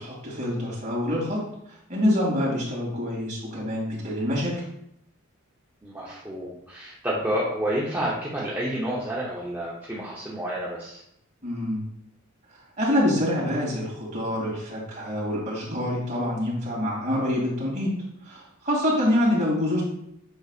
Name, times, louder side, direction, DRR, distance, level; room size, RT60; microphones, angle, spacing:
voice 1, 0.0-1.4 1.9-4.6 11.4-11.8 12.8-17.9 18.2-19.8, left 1 dB, 35° right, -5 dB, 2.6 m, -26 dB
voice 2, 5.8-11.0, right 1 dB, 10° right, -7 dB, 0.8 m, -29 dB
7.8 x 5.6 x 2.5 m, 0.76 s
head